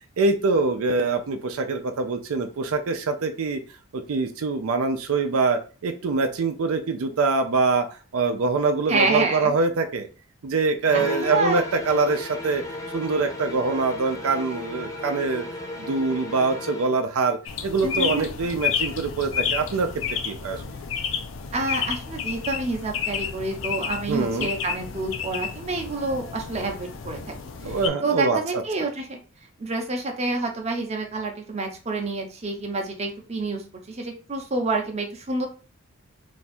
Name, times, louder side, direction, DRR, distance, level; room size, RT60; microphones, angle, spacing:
voice 1, 0.2-3.6 3.9-7.9 8.1-10.1 10.4-12.6 12.9-15.4 15.8-19.9 20.2-20.8 24.1-24.5 27.6-28.6, right 3 dB, 75° right, 6 dB, 0.4 m, -24 dB
voice 2, 8.9-9.5 10.9-11.6 17.8-18.3 21.5-27.4 27.6-29.2 29.6-35.5, right 3 dB, 30° right, 2 dB, 0.6 m, -28 dB
sound 1, 10.8-17.0, left 1 dB, 15° left, 0.7 m, -35 dB
sound 2, 17.5-27.9, left 7 dB, 60° left, 0.4 m, -31 dB
2.6 x 2.3 x 4.1 m, 0.36 s
head